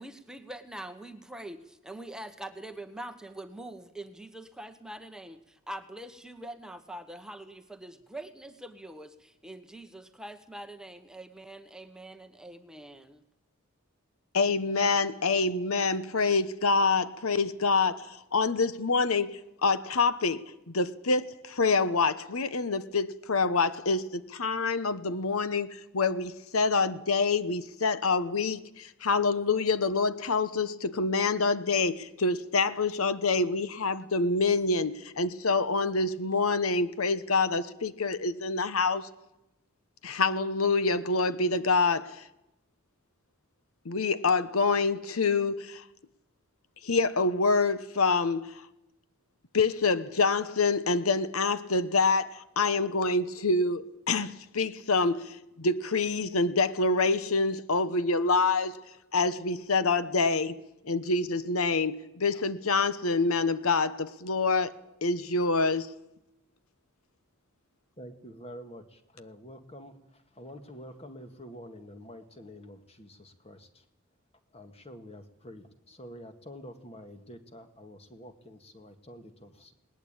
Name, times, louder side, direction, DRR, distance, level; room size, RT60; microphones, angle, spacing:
voice 1, 0.0-13.2, right 1 dB, 5° right, 1.0 m, -44 dB
voice 2, 14.3-39.1 40.0-42.2 43.8-45.8 46.8-48.6 49.5-58.8 59.1-60.6 60.8-64.8 65.0-65.9, left 4 dB, 85° left, 1.0 m, -26 dB
voice 3, 68.0-68.8 69.1-69.9 70.4-73.7 74.5-79.7, equal, 30° left, 1.9 m, -47 dB
20.5 x 19.0 x 8.8 m
head